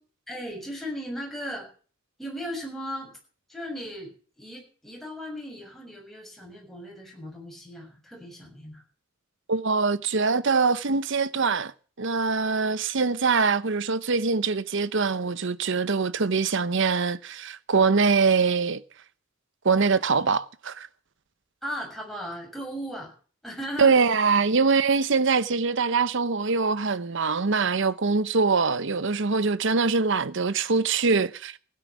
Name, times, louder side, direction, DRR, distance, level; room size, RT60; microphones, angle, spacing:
voice 1, 0.3-1.7 2.2-3.2 3.5-8.8 21.6-23.1 23.4-24.0, equal, ahead, 6.9 m, -37 dB
voice 2, 9.5-11.7 12.0-18.8 19.6-20.9 23.8-31.6, right 4 dB, 60° right, 0.8 m, -23 dB
16.5 x 9.7 x 6.1 m
head